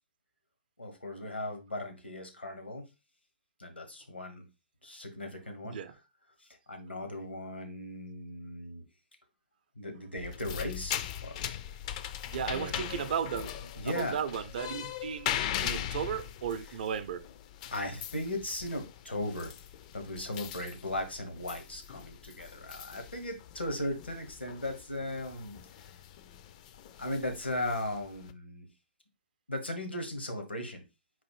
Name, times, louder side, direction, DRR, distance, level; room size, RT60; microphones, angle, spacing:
voice 1, 0.8-2.9 3.6-4.5 4.8-5.8 6.4-8.8 9.8-11.4 12.4-12.9 13.7-14.2 17.7-19.5 19.9-25.9 27.0-28.7 29.5-30.8, left 1 dB, 85° left, 1.2 m, -37 dB
sound 1, 10.2-28.3, left 10 dB, 40° left, 0.4 m, -40 dB
voice 2, 12.3-17.3, right 7 dB, 55° right, 0.5 m, -35 dB
4.0 x 2.5 x 4.7 m
figure-of-eight pair, 115°, 6 cm